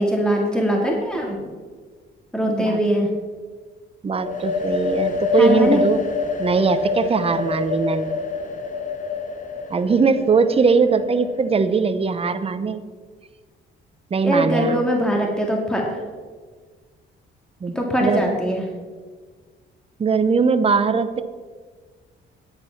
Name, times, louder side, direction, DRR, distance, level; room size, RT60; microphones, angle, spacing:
voice 1, 0.0-1.4 2.3-3.1 5.3-5.8 14.2-15.8 17.8-18.7, equal, 5° left, 0 dB, 2.1 m, -21 dB
voice 2, 2.4-2.8 4.0-6.0 6.4-8.1 9.7-12.8 14.1-14.8 17.6-17.7 18.0-18.2 20.0-21.2, right 5 dB, 30° right, 11 dB, 0.8 m, -20 dB
sound 1, 4.2-11.8, left 4 dB, 40° left, 1.4 m, -26 dB
9.8 x 8.6 x 5.8 m, 1.5 s
cardioid pair, 90°, 20 cm